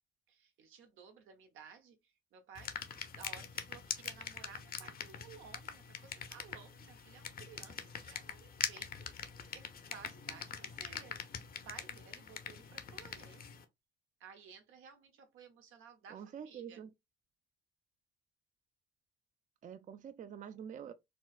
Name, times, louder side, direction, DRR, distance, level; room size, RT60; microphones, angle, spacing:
voice 1, 0.3-2.7 3.2-13.4 14.2-16.8, right 7 dB, 85° right, 0.8 m, -56 dB
sound 1, 2.6-13.6, left 7 dB, 45° left, 0.7 m, -44 dB
voice 2, 16.1-16.9 19.6-20.9, right 8 dB, 40° right, 0.4 m, -46 dB
4.2 x 2.1 x 2.3 m
cardioid pair, 90°, 20 cm